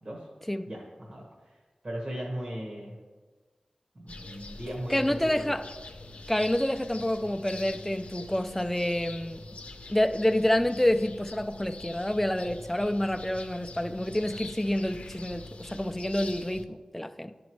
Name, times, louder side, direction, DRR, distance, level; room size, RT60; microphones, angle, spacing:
voice 1, 0.6-3.0 3.9-5.5, equal, 55° right, -3 dB, 1.4 m, -38 dB
sound 1, 4.1-16.6, left 2 dB, 80° left, 0.6 m, -45 dB
voice 2, 4.9-5.6 6.3-9.4 9.9-17.3, left 1 dB, 10° left, 8 dB, 0.4 m, -28 dB
11.5 x 5.1 x 3.1 m, 1.4 s
wide cardioid pair, 65°, 2 cm